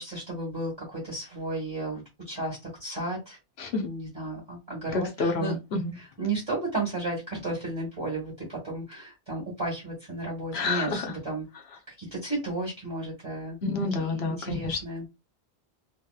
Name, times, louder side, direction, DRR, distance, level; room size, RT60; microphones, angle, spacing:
voice 1, 0.0-3.4 3.8-5.5 6.0-11.4 11.9-13.6 14.0-15.0, right 2 dB, 25° right, 1.5 m, -33 dB
voice 2, 4.9-5.9 10.5-11.1 13.6-14.8, left 3 dB, 85° left, 1.1 m, -29 dB
3.0 x 2.9 x 2.3 m
omnidirectional pair, 1.1 m